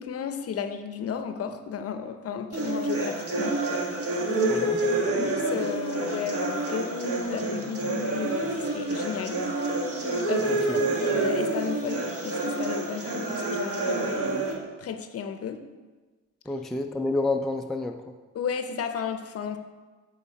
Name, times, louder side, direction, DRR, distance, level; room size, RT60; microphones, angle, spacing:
voice 1, 0.0-3.6 4.3-4.8 5.1-9.4 10.3-14.3 14.8-15.6 18.3-19.6, left 7 dB, 50° left, 8 dB, 0.6 m, -33 dB
sound 1, 2.5-14.5, right 2 dB, 50° right, 1.3 m, -28 dB
voice 2, 10.4-10.8 16.5-18.0, left 2 dB, ahead, 4 dB, 0.3 m, -29 dB
7.4 x 4.1 x 4.1 m, 1.3 s
cardioid pair, 90°, 30 cm